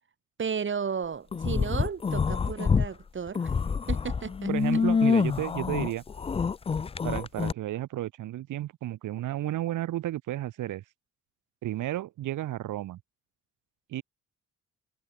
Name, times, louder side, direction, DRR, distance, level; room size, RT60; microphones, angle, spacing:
voice 1, 0.4-3.5 3.9-4.8, right 6 dB, 40° right, 3.3 m, -34 dB
sound 1, 1.3-2.9 3.3-7.5, left 5 dB, 20° left, 0.4 m, -26 dB
voice 2, 4.5-6.0 7.0-10.8 11.6-13.0 13.9-14.0, right 14 dB, 85° right, 7.5 m, -32 dB
cardioid pair, 90°, 30 cm